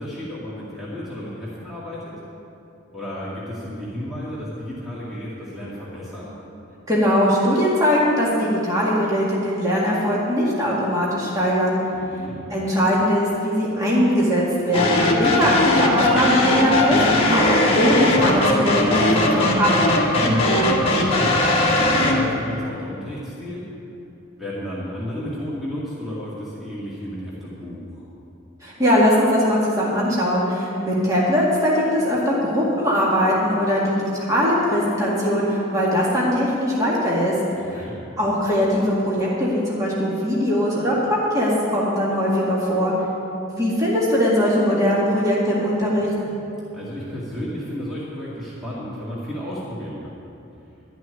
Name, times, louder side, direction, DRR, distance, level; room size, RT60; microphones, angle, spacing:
voice 1, 0.0-2.2 2.9-6.4 11.9-12.4 20.2-23.7 24.4-28.0 37.6-38.0 46.7-50.1, equal, ahead, -9 dB, 2.1 m, -33 dB
voice 2, 6.9-11.8 12.5-19.7 28.6-37.3 38.2-42.9 43.5-46.1, equal, 15° right, -6 dB, 1.9 m, -20 dB
sound 1, 14.7-22.3, left 1 dB, 25° left, 1.6 m, -19 dB
12.5 x 6.2 x 9.7 m, 2.8 s
head